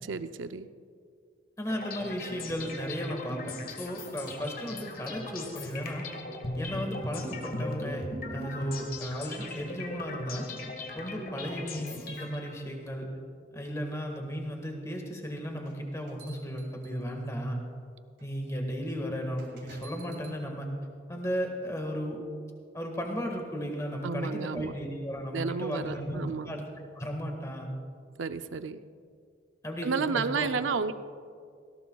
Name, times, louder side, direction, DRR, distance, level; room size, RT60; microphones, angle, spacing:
voice 1, 0.0-0.7 24.0-24.7 25.3-26.5 28.2-28.8 29.8-30.9, right 5 dB, 90° right, 10 dB, 0.5 m, -31 dB
voice 2, 1.6-6.0 6.5-10.5 10.9-13.1 13.5-17.6 18.2-20.7 21.1-22.2 22.7-27.7 29.6-30.5, equal, 15° left, 2 dB, 1.7 m, -35 dB
sound 1, 1.7-12.7, left 2 dB, 50° left, 1.6 m, -39 dB
sound 2, 15.6-17.4 18.2-18.3 19.4-20.4, right 4 dB, 65° right, 2.4 m, -53 dB
19.0 x 17.0 x 2.3 m, 2.2 s
head